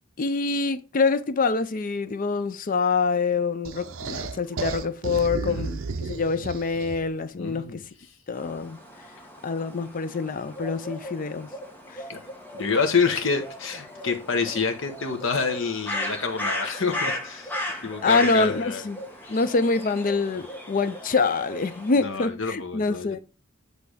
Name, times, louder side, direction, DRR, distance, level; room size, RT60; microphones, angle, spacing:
voice 1, 0.2-7.8 8.3-8.8 9.4-11.5 11.9-12.0 17.7-19.0 19.3-23.2, left 4 dB, 40° left, 0.4 m, -25 dB
sound 1, 3.6-7.2, right 4 dB, 70° right, 0.7 m, -33 dB
voice 2, 7.4-7.8 12.1-12.2 12.5-17.5 17.8-18.8 19.2-19.4 20.3-20.4 22.0-23.2, left 5 dB, 60° left, 1.0 m, -27 dB
sound 2, 8.3-22.0, left 1 dB, 10° left, 1.2 m, -36 dB
8.3 x 3.4 x 4.9 m
head